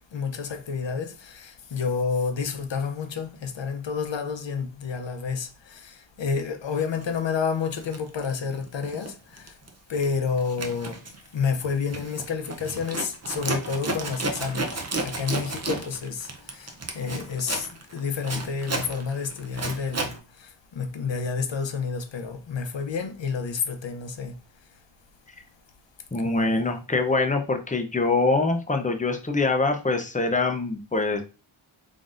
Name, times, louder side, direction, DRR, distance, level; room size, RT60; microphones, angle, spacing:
voice 1, 0.1-9.5 9.9-11.0 11.3-17.7 17.9-24.4 26.2-26.6, left 5 dB, 65° left, 0.7 m, -30 dB
Zipper (clothing), 7.0-7.2 7.7-9.1 9.4-9.7 10.0-20.2, right 2 dB, 30° right, 0.7 m, -33 dB
voice 2, 26.1-31.2, left 3 dB, 15° left, 0.6 m, -24 dB
3.8 x 3.6 x 2.5 m
wide cardioid pair, 95°, 49 cm